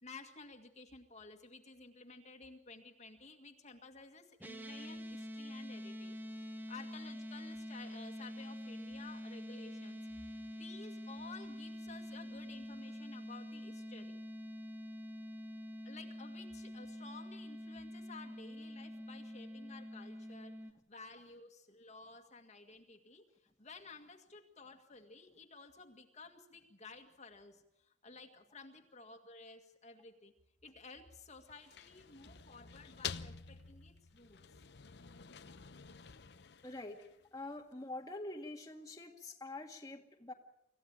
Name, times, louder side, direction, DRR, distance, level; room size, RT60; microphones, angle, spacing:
voice 1, 0.0-6.2 6.7-14.2 15.9-20.6 20.9-30.3 30.6-34.4, left 3 dB, 40° left, 4 dB, 1.9 m, -54 dB
sound 1, 4.4-20.7, equal, 10° right, 1.1 m, -46 dB
sound 2, 31.4-37.4, left 7 dB, 70° left, 0.8 m, -49 dB
voice 2, 36.6-37.0 37.3-40.3, left 2 dB, 20° left, 1 dB, 1.9 m, -45 dB
26.0 x 15.0 x 9.1 m, 0.82 s
head